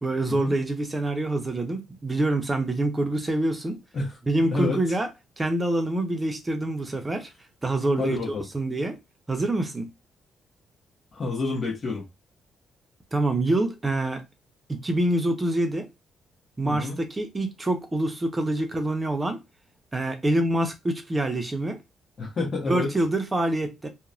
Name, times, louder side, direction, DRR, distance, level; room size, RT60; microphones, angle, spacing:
voice 1, 0.0-3.8 4.3-5.1 5.4-7.3 7.6-8.2 8.5-9.0 9.3-9.9 13.1-14.2 14.7-15.9 16.6-19.4 19.9-21.8 22.7-23.9, right 1 dB, 20° right, 0.6 m, -26 dB
voice 2, 4.5-4.9 8.0-8.4 11.1-12.0 16.6-17.0 22.2-22.9, left 3 dB, 45° left, 1.1 m, -28 dB
2.9 x 2.1 x 2.5 m
cardioid pair, 90°, 0 cm